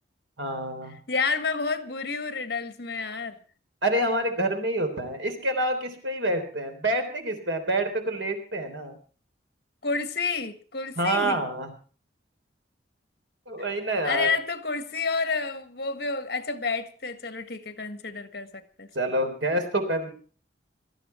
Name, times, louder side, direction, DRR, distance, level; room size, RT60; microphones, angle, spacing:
voice 1, 0.4-0.9 3.8-9.0 11.0-11.7 13.5-14.3 19.0-20.1, right 1 dB, 80° right, 6 dB, 3.7 m, -27 dB
voice 2, 1.1-3.4 9.8-11.5 14.0-18.9, left 4 dB, 55° left, 9 dB, 1.6 m, -30 dB
19.0 x 13.5 x 4.4 m, 0.41 s
head